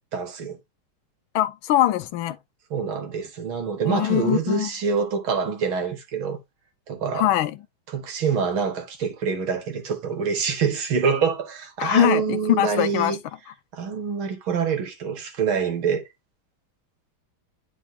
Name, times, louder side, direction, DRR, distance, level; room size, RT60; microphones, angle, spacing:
voice 1, 0.1-0.6 2.7-6.4 6.9-7.3 7.9-13.2 13.7-16.0, right 6 dB, 70° right, 2.4 m, -26 dB
voice 2, 1.3-2.4 3.8-4.7 7.1-7.6 11.8-13.2, left 13 dB, 75° left, 1.3 m, -22 dB
10.0 x 4.6 x 2.7 m
omnidirectional pair, 2.3 m